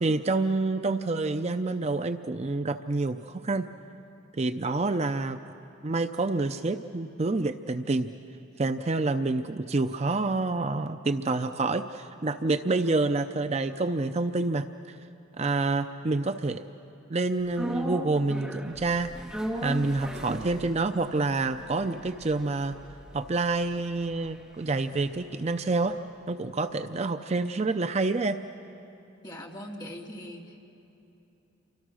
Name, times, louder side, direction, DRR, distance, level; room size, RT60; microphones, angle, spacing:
voice 1, 0.0-3.7 4.4-5.4 5.8-8.1 8.6-15.0 15.4-16.6 17.1-19.1 19.6-22.7 23.1-26.0 26.3-28.4, right 3 dB, 35° right, 9 dB, 0.5 m, -28 dB
sound 1, 17.5-25.8 26.1-26.2, right 1 dB, 5° right, 1.9 m, -38 dB
voice 2, 29.2-30.7, equal, 20° left, 0 dB, 2.3 m, -41 dB
29.5 x 25.0 x 6.3 m, 2.9 s
head